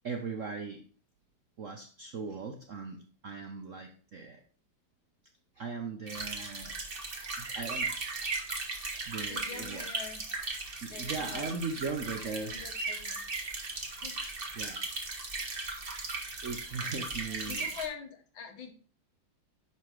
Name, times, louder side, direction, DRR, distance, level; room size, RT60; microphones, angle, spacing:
voice 1, 0.0-0.9 1.6-4.4 5.6-6.8 7.4-7.9 8.3-8.4 9.1-9.9 10.8-12.8 14.5-14.9 15.3-15.6 16.4-17.7, right 4 dB, 60° right, 4 dB, 0.8 m, -39 dB
sound 1, 6.1-17.9, right 3 dB, 30° right, 1.4 m, -37 dB
voice 2, 9.2-10.2 10.9-11.9 12.2-13.2 14.0-14.2 17.5-18.7, left 7 dB, 70° left, 4 dB, 2.0 m, -44 dB
10.5 x 3.7 x 4.8 m, 0.42 s
omnidirectional pair, 2.2 m